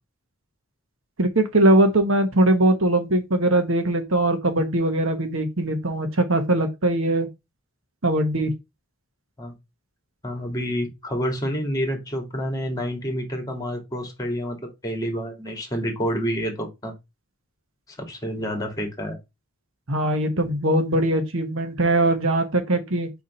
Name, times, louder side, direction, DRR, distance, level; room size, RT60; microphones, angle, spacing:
voice 1, 1.2-7.3 8.0-8.5 19.9-23.1, right 1 dB, 70° right, 1.3 m, -21 dB
voice 2, 10.2-14.6 14.8-16.9 18.0-19.2, equal, 20° left, 2.0 m, -28 dB
4.7 x 4.2 x 5.4 m
head